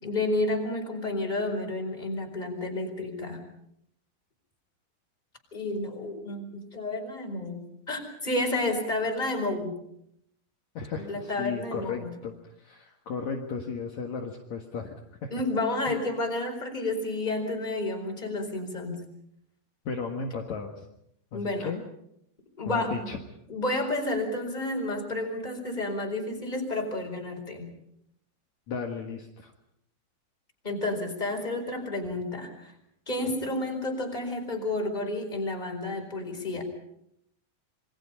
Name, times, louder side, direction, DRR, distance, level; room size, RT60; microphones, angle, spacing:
voice 1, 0.0-3.4 5.5-9.8 11.0-12.2 15.3-19.0 21.3-21.8 22.6-23.1 23.5-27.7 30.6-32.7 33.1-36.6, left 2 dB, 10° left, 2 dB, 3.9 m, -31 dB
voice 2, 10.7-14.9 15.2-15.3 15.9-16.0 19.9-20.9 21.3-21.8 22.7-23.2 28.7-29.5, left 5 dB, 65° left, 1 dB, 1.8 m, -35 dB
28.0 x 23.0 x 5.6 m, 0.76 s
omnidirectional pair, 5.8 m